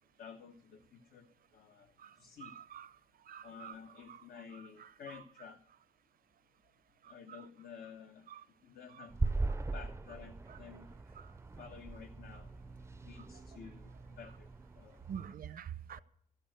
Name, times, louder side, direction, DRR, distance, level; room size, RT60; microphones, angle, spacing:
voice 1, 0.2-1.3 1.5-1.9 2.2-2.6 3.4-5.6 7.1-8.3 8.6-9.2 9.7-11.0 11.6-12.5 13.0-14.5 14.8-15.0, left 7 dB, 75° left, 0.9 m, -52 dB
voice 2, 2.4-2.9 3.3-3.7 8.3-8.4 15.1-16.0, right 8 dB, 65° right, 0.6 m, -45 dB
sound 1, 9.1-15.3, right 3 dB, 15° right, 0.4 m, -40 dB
13.5 x 6.9 x 9.1 m
wide cardioid pair, 125°, 16 cm